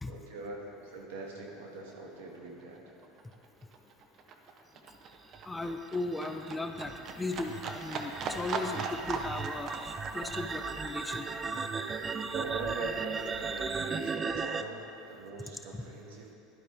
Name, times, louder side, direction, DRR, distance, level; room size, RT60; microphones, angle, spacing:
voice 1, 0.1-3.0 12.3-16.3, right 2 dB, 85° right, -1 dB, 1.9 m, -43 dB
Livestock farm animals working animals, 1.5-1.6 1.9-12.9 13.2-14.2 14.5-14.6, right 4 dB, 45° right, 1.0 m, -40 dB
sound 1, 5.3-14.6, right 5 dB, 25° right, 0.5 m, -36 dB
voice 2, 5.5-11.3 15.7-15.8, left 2 dB, 10° left, 6 dB, 0.6 m, -37 dB
sound 2, 7.0-14.2, left 4 dB, 55° left, 2.0 m, -55 dB
12.0 x 11.5 x 3.6 m, 2.7 s
supercardioid pair, 100°, 0 cm